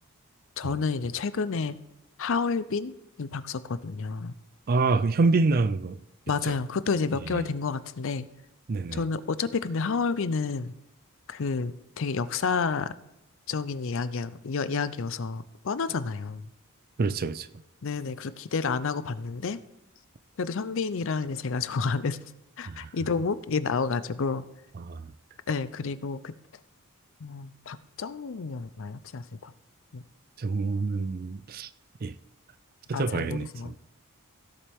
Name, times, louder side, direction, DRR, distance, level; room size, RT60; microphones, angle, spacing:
voice 1, 0.6-1.8 2.2-2.9 3.2-4.3 6.3-8.3 8.9-10.7 11.3-12.9 13.5-16.5 17.8-19.6 20.4-22.3 22.6-24.4 25.5-26.3 27.2-29.5 29.9-30.0 32.9-33.8, left 4 dB, 60° left, 0.5 m, -30 dB
voice 2, 4.7-6.0 7.3-7.5 8.7-9.0 17.0-17.5 22.7-22.9 24.8-25.1 30.4-31.7 32.0-32.1 32.9-33.8, right 3 dB, 40° right, 0.4 m, -26 dB
16.5 x 7.3 x 3.5 m
head